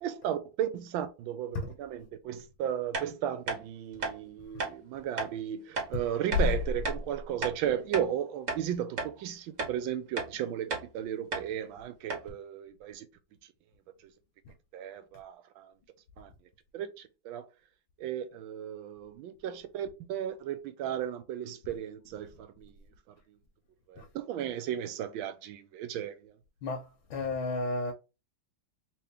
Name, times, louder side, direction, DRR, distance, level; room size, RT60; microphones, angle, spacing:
voice 1, 0.0-13.1 14.7-15.7 16.2-16.3 16.7-16.9 17.2-17.4 18.0-22.7 23.9-26.3, right 10 dB, 85° right, 1.4 m, -35 dB
sound 1, 2.9-3.1 3.5-3.6 4.0-4.2 4.6-4.7 5.2-5.3 5.8-5.9 6.3-6.5 6.8-7.0 7.4-8.1 8.5-8.6 9.0-9.1 9.6-9.8 10.2-10.3 10.7-10.9 11.3-11.5 11.8-11.9 12.1-12.3, right 3 dB, 50° right, 1.2 m, -34 dB
voice 2, 26.6-27.9, left 3 dB, 80° left, 1.5 m, -31 dB
3.6 x 3.0 x 3.4 m
omnidirectional pair, 2.1 m